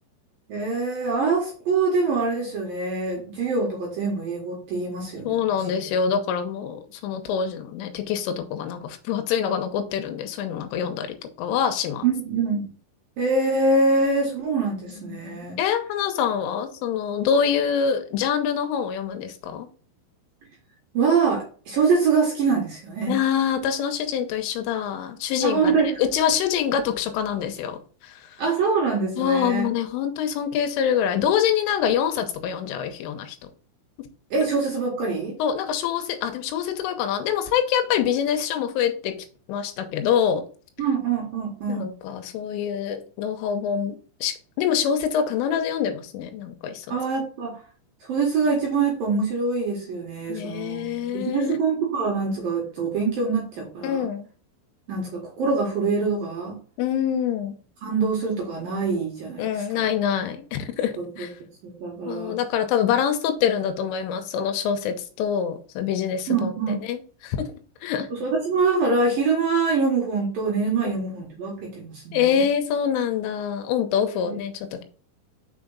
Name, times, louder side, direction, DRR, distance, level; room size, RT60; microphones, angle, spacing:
voice 1, 0.5-5.9 12.0-12.7 13.2-15.6 20.9-23.2 25.4-26.0 28.4-29.7 34.3-35.4 40.8-41.9 46.9-47.6 48.1-54.1 54.9-56.6 57.8-59.9 61.0-61.3 61.6-62.4 66.3-66.8 68.1-72.4 74.2-74.4, right 4 dB, 65° right, -2 dB, 2.5 m, -24 dB
voice 2, 5.2-11.1 11.4-12.0 15.0-19.7 23.1-27.8 28.0-28.2 29.2-33.5 35.4-39.1 39.5-40.4 41.7-46.9 50.3-51.6 53.8-54.3 56.8-57.5 59.4-61.3 62.1-67.4 67.8-68.1 70.8-70.9 72.1-74.8, left 8 dB, 85° left, 6 dB, 3.3 m, -25 dB
6.7 x 4.9 x 4.0 m, 0.40 s
omnidirectional pair, 5.9 m